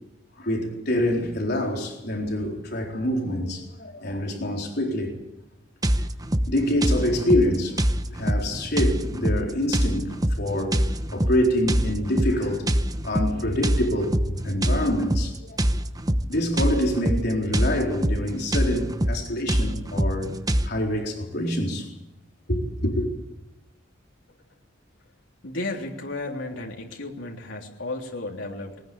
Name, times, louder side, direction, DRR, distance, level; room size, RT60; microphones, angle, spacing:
voice 1, 0.4-5.2 6.5-10.8 11.1-12.7 13.0-15.6 16.3-20.3 20.6-21.9 22.5-23.1, left 1 dB, 60° left, 4.2 m, -26 dB
sound 1, 5.8-20.7, right 1 dB, 20° right, 1.0 m, -25 dB
voice 2, 25.4-28.8, left 2 dB, 80° left, 3.4 m, -33 dB
21.0 x 19.5 x 8.7 m
head